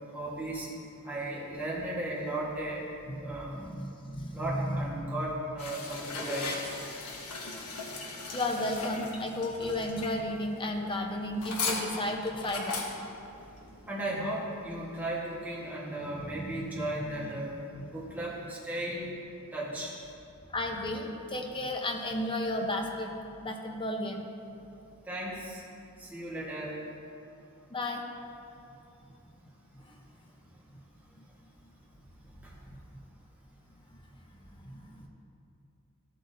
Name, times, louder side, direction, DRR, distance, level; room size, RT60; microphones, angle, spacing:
voice 1, 0.1-0.7 1.0-2.8 3.2-3.6 4.3-6.8 13.9-17.5 17.9-19.1 19.5-19.9 25.1-25.6 26.0-26.8, right 1 dB, 10° right, -6 dB, 1.3 m, -35 dB
voice 2, 3.2-4.8 8.3-12.8 16.0-16.8 17.0-17.3 17.8-17.9 20.5-23.1 23.4-24.3 27.7-28.1 34.6-35.1, left 1 dB, 25° left, 2 dB, 0.8 m, -33 dB
sound 1, 5.6-14.3, left 3 dB, 85° left, 1.2 m, -38 dB
13.5 x 7.9 x 2.6 m, 2.6 s
head